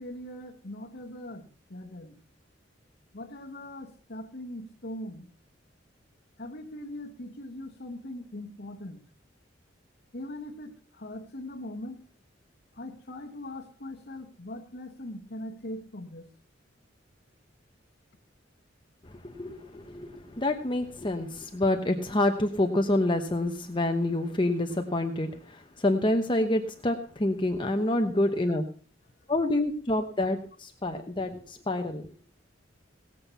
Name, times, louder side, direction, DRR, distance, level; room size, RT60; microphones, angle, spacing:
voice 1, 0.0-2.2 3.1-5.3 6.4-9.1 10.1-12.0 12.7-16.3 27.8-27.9, left 1 dB, 55° left, -2 dB, 1.3 m, -41 dB
voice 2, 19.0-28.6 29.3-32.1, left 1 dB, 25° left, 4 dB, 1.0 m, -27 dB
18.0 x 7.6 x 5.6 m, 0.42 s
head